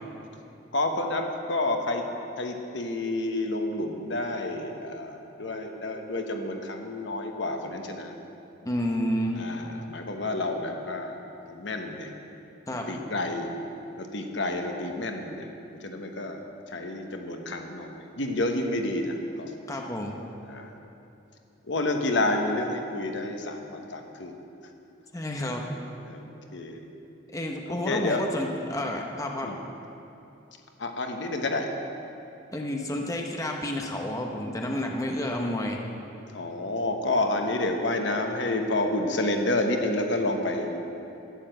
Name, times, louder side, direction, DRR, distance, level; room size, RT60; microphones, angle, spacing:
voice 1, 0.7-2.0 2.4-8.1 9.4-11.2 11.4-12.1 12.9-13.5 14.0-15.5 15.8-16.4 16.7-19.5 20.5-20.7 21.7-24.3 25.4-25.7 26.1-26.8 27.7-28.2 29.4-29.6 30.8-31.7 36.3-40.8, left 2 dB, 65° left, 4 dB, 1.2 m, -29 dB
voice 2, 8.6-9.5 12.7-12.9 19.7-20.2 25.1-25.7 27.3-29.5 32.5-35.8, left 1 dB, 15° left, 1 dB, 0.9 m, -30 dB
11.5 x 9.7 x 7.8 m, 2.8 s
head